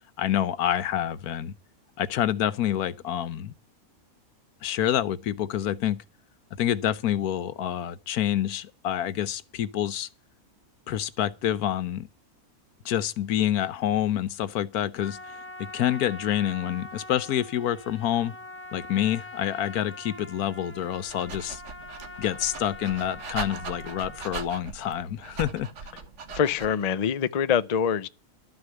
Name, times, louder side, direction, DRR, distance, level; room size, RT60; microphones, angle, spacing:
voice 1, 0.2-1.5 2.0-3.5 4.6-6.0 6.6-10.1 10.9-12.1 12.8-18.4 18.7-21.6 22.2-25.7, left 11 dB, 90° left, 1.3 m, -27 dB
Trumpet, 15.0-24.5, left 2 dB, 10° left, 1.0 m, -43 dB
Dog, 20.8-26.9, right 5 dB, 55° right, 1.5 m, -40 dB
voice 2, 26.3-28.1, left 7 dB, 45° left, 0.5 m, -24 dB
12.5 x 6.4 x 8.2 m
omnidirectional pair, 1.5 m